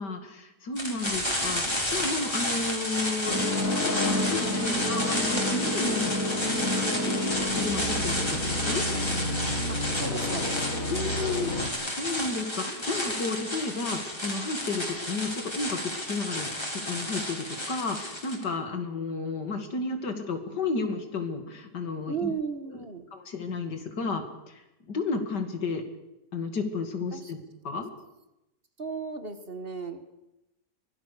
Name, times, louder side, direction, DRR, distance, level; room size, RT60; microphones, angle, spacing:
voice 1, 0.0-6.4 6.7-8.8 10.9-22.3 23.1-25.8 26.3-27.4 27.6-27.9, left 3 dB, 90° left, 7 dB, 2.9 m, -32 dB
sound 1, 0.8-18.4, left 1 dB, 15° left, 3.8 m, -31 dB
sound 2, 3.3-11.7, left 1 dB, 55° left, 2.6 m, -30 dB
voice 2, 9.7-10.6 22.1-23.1 27.1-27.3 28.8-30.1, right 5 dB, 35° right, 9 dB, 1.6 m, -35 dB
23.5 x 17.5 x 6.8 m, 0.93 s
omnidirectional pair, 1.8 m